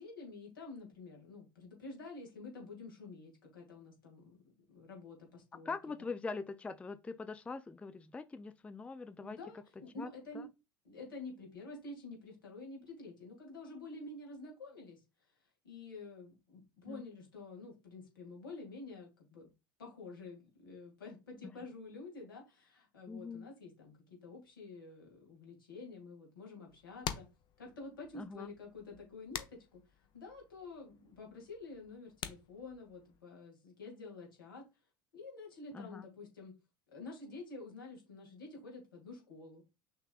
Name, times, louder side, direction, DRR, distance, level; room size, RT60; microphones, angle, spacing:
voice 1, 0.0-4.4 4.7-6.1 9.2-10.5 10.8-15.0 15.6-19.5 19.8-27.3 27.6-34.6 35.1-36.5 36.9-39.6, left 3 dB, 80° left, 2.2 m, -49 dB
voice 2, 5.7-9.4 10.0-10.1 10.3-10.4 16.9-17.0 23.1-23.5 28.1-28.5 35.7-36.1, left 4 dB, 10° left, 0.3 m, -43 dB
sound 1, 26.7-33.2, left 9 dB, 45° left, 0.7 m, -48 dB
6.1 x 3.1 x 2.4 m
figure-of-eight pair, 75°, 11 cm